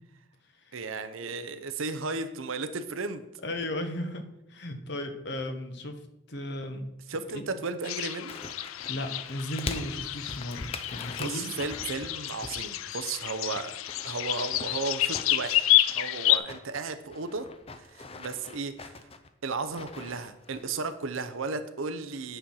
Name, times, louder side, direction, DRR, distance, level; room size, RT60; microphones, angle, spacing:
voice 1, 0.7-3.3 7.1-8.4 11.1-13.8 14.0-15.7 15.9-17.5 17.8-19.0 19.4-22.4, right 4 dB, 80° right, 10 dB, 0.7 m, -34 dB
voice 2, 3.4-4.2 4.5-6.0 6.3-6.9 7.3-7.4 8.9-11.5, left 1 dB, 55° left, 7 dB, 0.9 m, -35 dB
sound 1, 7.8-16.4, left 14 dB, 80° left, 0.4 m, -29 dB
sound 2, 8.3-12.7 13.0-16.1 16.4-20.7 21.0-21.1, left 3 dB, 30° left, 0.5 m, -43 dB
8.9 x 4.4 x 5.6 m, 0.88 s
head